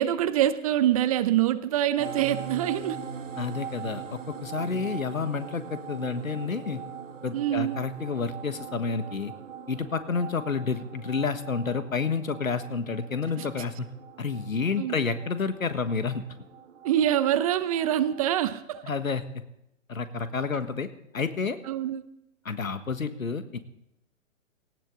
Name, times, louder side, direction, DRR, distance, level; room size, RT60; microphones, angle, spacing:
voice 1, 0.0-3.0 7.3-7.8 13.4-13.5 14.8-14.9 16.8-18.8 21.7-22.0, right 11 dB, 25° right, 14 dB, 0.7 m, -25 dB
sound 1, 2.0-18.2, right 7 dB, 65° right, 2.3 m, -42 dB
voice 2, 3.4-6.8 7.2-9.3 9.7-13.9 14.2-16.2 18.8-19.2 19.9-20.9 21.1-21.6 22.4-23.6, left 5 dB, 80° left, 11 dB, 1.6 m, -30 dB
18.0 x 16.5 x 3.9 m, 0.83 s
figure-of-eight pair, 125°, 40 cm